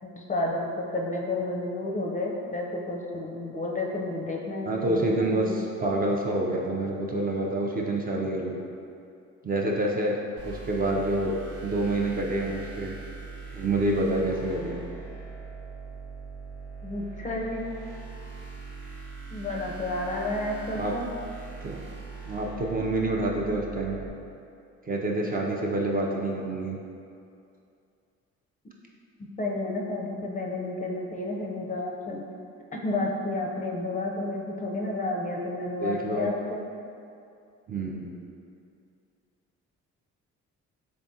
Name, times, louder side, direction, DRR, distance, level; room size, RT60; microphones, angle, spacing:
voice 1, 0.0-5.5 16.8-17.6 19.3-21.1 29.4-32.2 32.7-36.6, left 2 dB, 25° left, -2 dB, 0.5 m, -31 dB
voice 2, 4.7-8.6 9.4-10.2 10.4-11.3 11.6-12.9 13.5-14.8 20.7-20.9 21.6-21.8 22.2-24.0 24.9-26.8 35.8-36.3 37.7-38.3, right 1 dB, 30° right, -2 dB, 0.4 m, -27 dB
sound 1, 10.4-24.1, right 4 dB, 80° right, 0.7 m, -41 dB
3.5 x 3.4 x 2.7 m, 2.5 s
cardioid pair, 90°, 30 cm